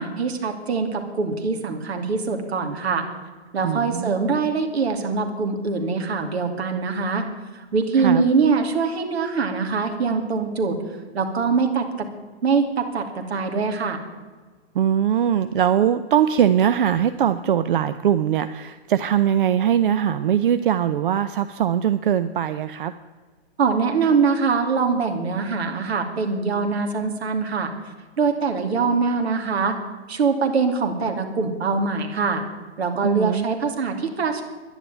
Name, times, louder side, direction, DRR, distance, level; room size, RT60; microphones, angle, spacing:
voice 1, 0.0-3.0 3.5-7.2 7.7-10.8 11.1-12.1 12.4-13.0 13.3-14.0 23.6-27.7 28.2-29.7 30.1-32.4 32.8-34.4, right 4 dB, 70° right, 5 dB, 2.8 m, -23 dB
voice 2, 3.6-4.1 8.0-8.2 14.7-22.9 33.0-33.5, right 9 dB, 50° right, 12 dB, 0.6 m, -21 dB
11.0 x 10.5 x 9.0 m, 1.4 s
hypercardioid pair, 160°, 33 cm